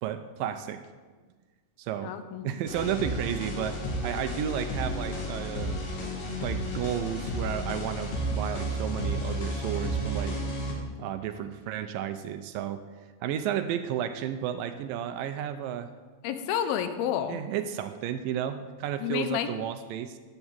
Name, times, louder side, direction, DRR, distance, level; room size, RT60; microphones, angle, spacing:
voice 1, 0.0-0.8 1.8-2.1 2.4-5.8 6.4-10.4 11.0-12.9 13.2-15.9 17.3-20.2, right 10 dB, 80° right, 9 dB, 2.2 m, -32 dB
voice 2, 2.0-2.4 16.2-17.4 19.0-19.5, left 9 dB, 80° left, 10 dB, 2.7 m, -30 dB
sound 1, 2.7-10.7, equal, 65° left, 3.9 m, -32 dB
11.0 x 8.4 x 8.7 m, 1.4 s
omnidirectional pair, 4.3 m